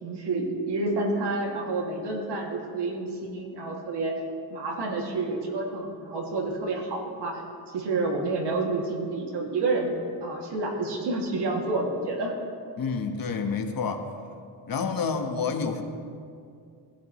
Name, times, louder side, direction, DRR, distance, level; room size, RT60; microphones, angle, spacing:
voice 1, 0.0-4.1 4.5-7.4 7.7-12.3 15.3-15.4, right 2 dB, 80° right, 0 dB, 2.5 m, -29 dB
voice 2, 12.8-14.1 14.7-15.8, left 5 dB, 55° left, 5 dB, 1.3 m, -28 dB
20.0 x 11.5 x 3.2 m, 2.4 s
cardioid pair, 105°, 40 cm